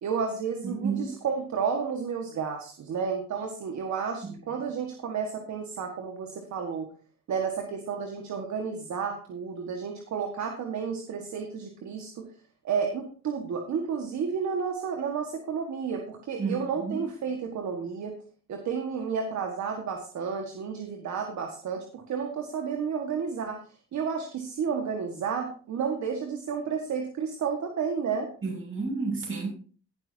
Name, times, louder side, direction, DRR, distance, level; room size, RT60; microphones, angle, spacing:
voice 1, 0.0-6.9 7.3-12.3 12.6-18.1 18.5-23.6 23.9-28.3, right 6 dB, 65° right, 3 dB, 1.8 m, -31 dB
voice 2, 0.6-1.1 4.2-4.4 16.4-17.1 28.4-29.5, right 4 dB, 45° right, -1 dB, 7.1 m, -31 dB
18.5 x 7.5 x 2.9 m, 0.39 s
cardioid pair, 90°, 30 cm